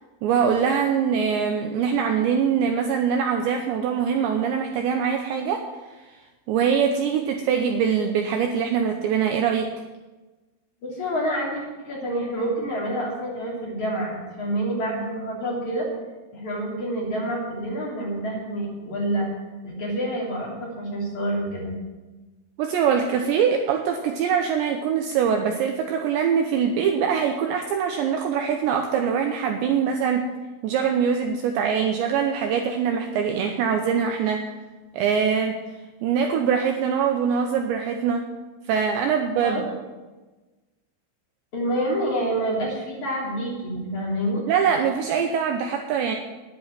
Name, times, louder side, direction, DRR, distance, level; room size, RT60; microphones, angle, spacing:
voice 1, 0.2-5.7 6.5-9.7 22.6-30.3 30.6-34.4 34.9-35.6 36.0-38.2 38.7-39.7 44.5-46.2, right 7 dB, 80° right, 4 dB, 2.7 m, -23 dB
voice 2, 10.8-15.9 16.3-19.3 19.6-21.7 39.4-39.7 41.5-44.4, right 1 dB, 40° left, -4 dB, 4.1 m, -27 dB
10.5 x 10.0 x 7.5 m, 1.2 s
omnidirectional pair, 6.0 m